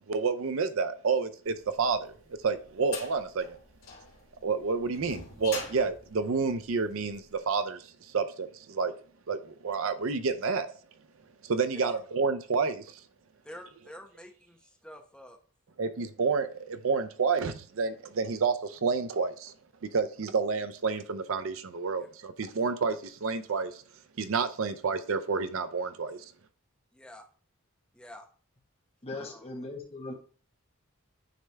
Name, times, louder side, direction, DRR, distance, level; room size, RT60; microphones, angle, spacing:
voice 1, 0.0-2.1 2.4-3.6 4.4-8.9 9.3-10.7 11.4-13.0 15.8-19.5 19.9-23.8 24.2-26.2, right 5 dB, 65° right, 0.5 m, -29 dB
sound 1, 1.8-7.2, left 5 dB, 65° left, 3.1 m, -43 dB
voice 2, 13.4-15.4 22.0-22.1 26.9-27.2 27.9-28.3 29.1-29.5, equal, 5° left, 0.8 m, -48 dB
voice 3, 29.0-30.1, left 2 dB, 30° left, 1.2 m, -39 dB
9.4 x 3.3 x 3.3 m
head